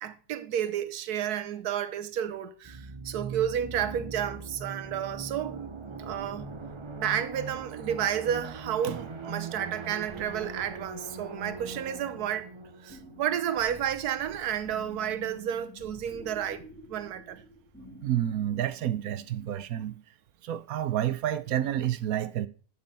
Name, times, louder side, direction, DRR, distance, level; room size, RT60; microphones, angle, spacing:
voice 1, 0.0-5.7 6.0-6.5 6.9-12.5 12.8-16.6 16.9-17.4, right 9 dB, 90° right, 1.3 m, -31 dB
sound 1, 2.6-14.2, right 4 dB, 45° right, 0.3 m, -41 dB
sound 2, 6.1-19.4, equal, 10° left, 2.0 m, -51 dB
voice 2, 18.0-20.0 20.4-22.5, right 11 dB, 75° right, 1.1 m, -29 dB
7.7 x 7.3 x 4.1 m
omnidirectional pair, 1.6 m